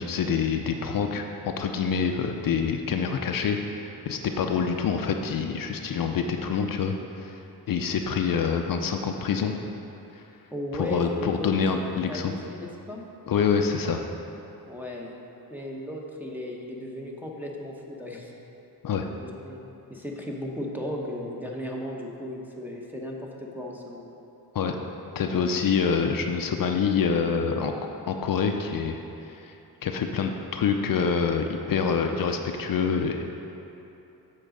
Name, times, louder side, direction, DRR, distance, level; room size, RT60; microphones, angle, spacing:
voice 1, 0.0-7.3 7.7-9.5 10.1-10.2 10.8-12.3 13.3-14.0 18.8-19.1 24.5-24.8 25.2-27.7 28.1-29.0 29.3-29.5 29.8-33.2, left 6 dB, 60° left, 4 dB, 0.5 m, -26 dB
voice 2, 10.5-13.1 14.7-15.1 15.5-18.3 19.2-24.2, left 1 dB, 5° right, -2 dB, 0.9 m, -36 dB
7.5 x 3.9 x 6.4 m, 3.0 s
cardioid pair, 100°, 38 cm